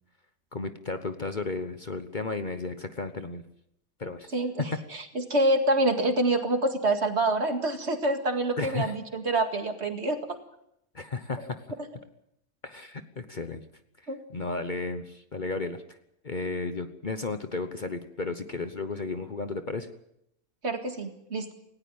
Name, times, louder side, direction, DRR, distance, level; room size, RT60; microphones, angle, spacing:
voice 1, 0.5-3.4 4.0-4.3 8.6-8.9 10.9-11.5 12.6-13.6 14.3-15.8 16.2-19.9, left 3 dB, 40° left, 9 dB, 1.1 m, -33 dB
voice 2, 4.3-10.2 14.1-14.2 20.6-21.5, right 2 dB, 50° right, 6 dB, 2.3 m, -26 dB
19.0 x 17.0 x 8.7 m, 0.78 s
omnidirectional pair, 1.4 m